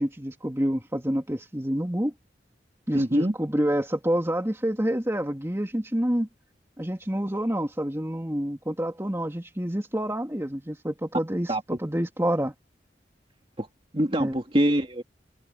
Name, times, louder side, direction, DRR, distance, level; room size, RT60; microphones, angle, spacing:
voice 1, 0.0-2.1 2.9-6.3 6.8-12.5 14.2-14.4, equal, 15° right, 2.7 m, -28 dB
voice 2, 2.9-3.3 11.5-11.6 13.6-13.7 13.9-15.0, right 1 dB, 30° right, 2.8 m, -24 dB
head